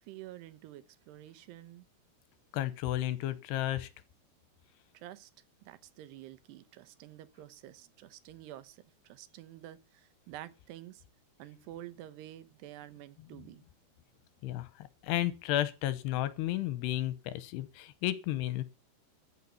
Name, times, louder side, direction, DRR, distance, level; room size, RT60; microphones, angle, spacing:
voice 1, 0.0-1.9 4.9-5.3 5.7-11.0 11.4-13.6, right 13 dB, 80° right, 3.0 m, -49 dB
voice 2, 2.5-3.9 14.4-18.6, left 14 dB, 85° left, 3.0 m, -33 dB
14.0 x 5.6 x 8.3 m
omnidirectional pair, 4.8 m